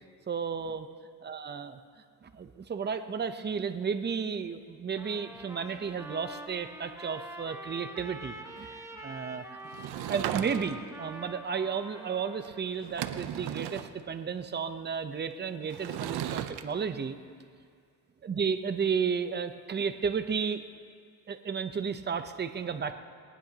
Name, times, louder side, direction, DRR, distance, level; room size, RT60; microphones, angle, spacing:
voice 1, 0.3-0.8 1.2-1.8 2.2-9.6 10.1-17.2 18.2-20.6 21.3-22.9, right 6 dB, 25° right, 9 dB, 0.8 m, -33 dB
Trumpet, 5.0-12.7, right 1 dB, 5° right, 1.4 m, -45 dB
Sliding door / Wood, 9.7-10.9 12.4-12.5 12.8-13.9 15.7-16.6, right 11 dB, 75° right, 0.8 m, -36 dB
21.0 x 18.5 x 3.0 m, 2.2 s
cardioid pair, 105°, 39 cm